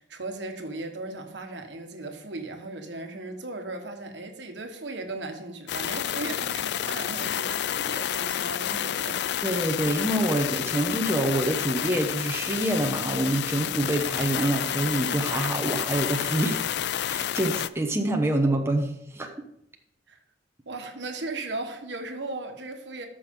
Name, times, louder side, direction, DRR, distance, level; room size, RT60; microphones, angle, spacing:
voice 1, 0.1-9.2 20.1-20.2 20.7-23.1, right 2 dB, 70° right, 5 dB, 1.4 m, -37 dB
sound 1, 5.7-17.7, left 10 dB, 65° left, 0.3 m, -30 dB
voice 2, 9.4-16.6 17.0-19.3, right 1 dB, 15° right, 2 dB, 0.9 m, -26 dB
13.0 x 6.2 x 3.7 m, 0.78 s
head